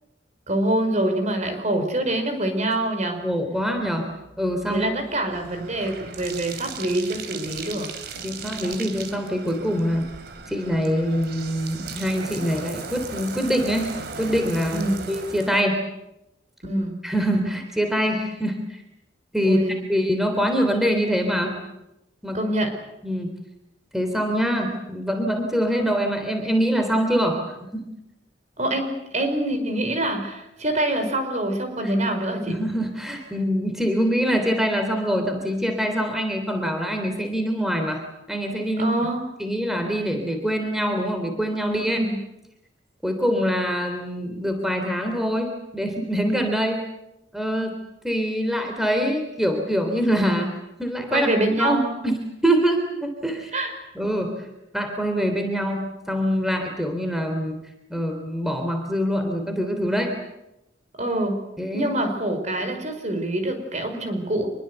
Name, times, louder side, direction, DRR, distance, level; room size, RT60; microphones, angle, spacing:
voice 1, 0.5-3.2 4.7-7.9 14.7-15.0 16.6-17.0 19.4-19.8 22.3-22.8 28.6-32.6 38.8-39.2 41.8-42.2 51.1-51.9 53.5-53.7 61.0-61.4 61.7-64.5, right 1 dB, 40° right, 6 dB, 5.0 m, -25 dB
voice 2, 3.2-4.1 4.4-5.0 8.2-10.1 10.5-14.8 15.1-15.8 17.0-18.8 19.3-19.6 19.9-21.6 22.2-22.4 23.0-23.3 23.9-27.9 32.5-38.0 38.3-39.0 39.4-42.0 43.0-46.9 47.3-47.7 48.0-50.5 50.8-51.3 51.6-53.5 54.0-54.4 54.7-57.6 57.9-60.1 61.6-61.9, equal, ahead, 4 dB, 3.4 m, -24 dB
Bathtub (filling or washing), 4.3-15.6, right 4 dB, 60° right, 2.9 m, -37 dB
26.0 x 23.0 x 8.0 m, 0.90 s
head